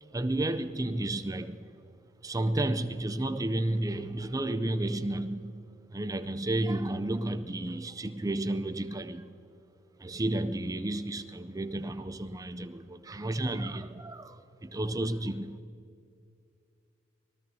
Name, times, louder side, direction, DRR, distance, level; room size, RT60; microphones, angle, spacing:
voice 1, 0.0-1.7 2.2-5.5 5.9-9.4 10.0-15.6, right 1 dB, 20° right, 10 dB, 0.6 m, -32 dB
24.5 x 19.5 x 2.8 m, 2.4 s
head